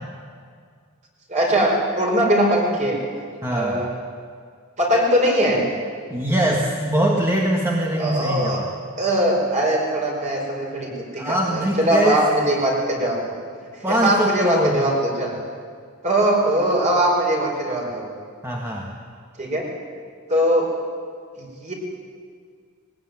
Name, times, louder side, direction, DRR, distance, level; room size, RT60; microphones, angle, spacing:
voice 1, 1.3-3.0 3.5-3.9 4.8-5.6 8.0-8.6 9.0-13.2 13.9-15.4 16.0-18.0 19.4-19.7 20.3-20.7 21.4-21.7, right 1 dB, 35° right, -1 dB, 5.2 m, -21 dB
voice 2, 3.4-3.8 6.1-8.5 11.2-12.2 13.8-14.8 18.4-19.0, right 1 dB, 15° right, -2 dB, 1.8 m, -22 dB
20.5 x 18.0 x 9.4 m, 2.1 s
head